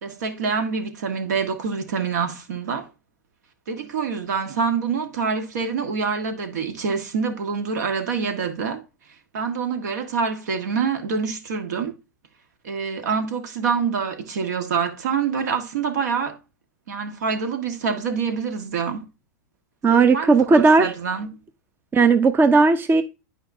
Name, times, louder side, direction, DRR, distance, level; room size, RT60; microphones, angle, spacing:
voice 1, 0.0-2.9 3.7-8.8 9.3-12.0 12.6-16.4 16.9-19.1 19.9-21.4, right 5 dB, 70° right, 1.6 m, -26 dB
voice 2, 19.8-20.9 21.9-23.0, right 4 dB, 20° right, 0.7 m, -16 dB
11.5 x 4.9 x 2.7 m
figure-of-eight pair, 90°, 10 cm